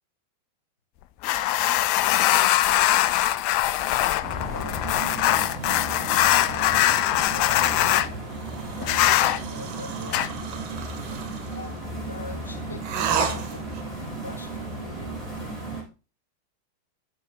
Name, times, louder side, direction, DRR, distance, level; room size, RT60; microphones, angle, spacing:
sound 1, 1.2-8.1 8.8-9.4 10.1-10.3, left 14 dB, 45° left, 0.4 m, -22 dB
sound 2, 4.2-15.8, right 2 dB, 5° right, 4.3 m, -35 dB
voice 1, 4.5-4.9 6.3-8.3 8.7-10.3 11.5-15.4, left 3 dB, 70° left, 1.1 m, -43 dB
sound 3, 8.3-11.7 12.8-13.9, right 7 dB, 40° right, 1.5 m, -32 dB
13.5 x 4.9 x 2.4 m
figure-of-eight pair, 90°, 0 cm